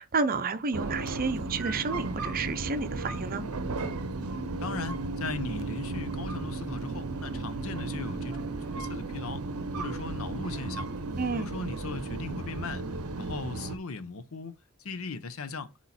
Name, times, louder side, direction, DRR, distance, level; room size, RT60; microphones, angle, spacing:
voice 1, 0.0-3.4 11.2-11.5, right 4 dB, 40° right, 0.6 m, -30 dB
sound 1, 0.7-13.8, right 3 dB, 80° right, 0.7 m, -34 dB
voice 2, 4.6-9.5 9.8-10.9 11.3-12.9 13.2-15.7, left 4 dB, 70° left, 0.7 m, -38 dB
8.0 x 3.1 x 4.2 m
head